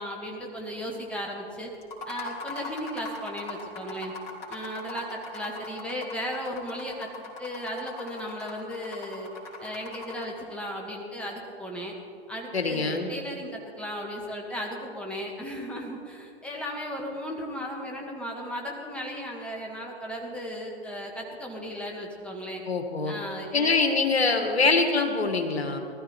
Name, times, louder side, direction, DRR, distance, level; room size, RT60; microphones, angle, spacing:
voice 1, 0.0-1.7 2.1-4.1 4.5-7.1 7.4-9.3 9.6-12.0 12.3-22.6 23.1-23.7, equal, 5° left, -1 dB, 1.9 m, -36 dB
sound 1, 1.8-10.4, left 2 dB, 40° left, 3.4 m, -40 dB
voice 2, 12.5-13.1 22.7-23.1 23.5-25.8, left 4 dB, 75° left, 5 dB, 1.8 m, -24 dB
19.0 x 13.0 x 4.5 m, 2.5 s
figure-of-eight pair, 115°, 32 cm